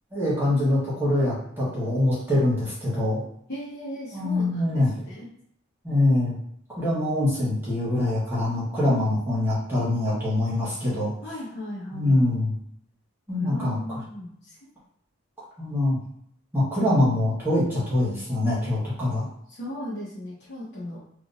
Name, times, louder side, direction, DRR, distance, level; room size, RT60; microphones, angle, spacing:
voice 1, 0.1-3.2 4.1-4.9 5.8-6.4 6.8-11.1 11.9-12.5 13.3-14.0 15.6-16.0 16.5-19.2, left 1 dB, 10° right, -9 dB, 1.3 m, -24 dB
voice 2, 3.5-5.3 11.2-12.2 13.4-14.6 19.5-21.0, left 1 dB, 55° left, -11 dB, 1.1 m, -37 dB
3.4 x 2.9 x 2.6 m, 0.67 s
head